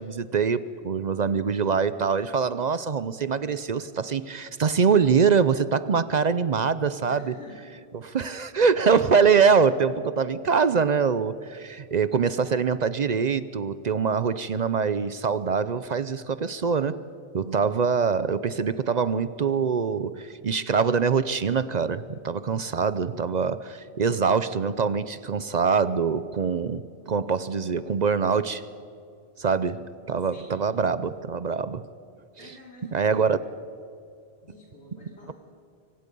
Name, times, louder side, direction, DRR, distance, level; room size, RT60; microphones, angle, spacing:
voice 1, 0.0-7.2 8.0-17.0 17.3-28.6 29.4-31.9 32.9-33.4, right 6 dB, 50° right, 15 dB, 0.6 m, -24 dB
voice 2, 7.1-7.6 30.3-30.8 32.4-33.3 34.4-35.3, left 2 dB, 85° left, -2 dB, 3.2 m, -48 dB
25.5 x 24.5 x 5.4 m, 2.5 s
omnidirectional pair, 1.1 m